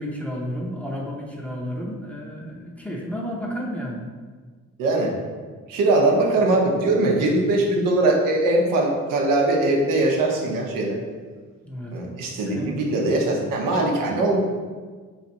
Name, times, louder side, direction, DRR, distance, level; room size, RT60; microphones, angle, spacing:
voice 1, 0.0-4.0 11.6-11.9 12.3-12.8, equal, 5° left, -2 dB, 0.8 m, -31 dB
voice 2, 4.8-5.1 5.7-11.0 11.9-14.4, right 2 dB, 80° right, -1 dB, 0.8 m, -21 dB
3.2 x 2.5 x 4.0 m, 1.5 s
supercardioid pair, 55°, 33 cm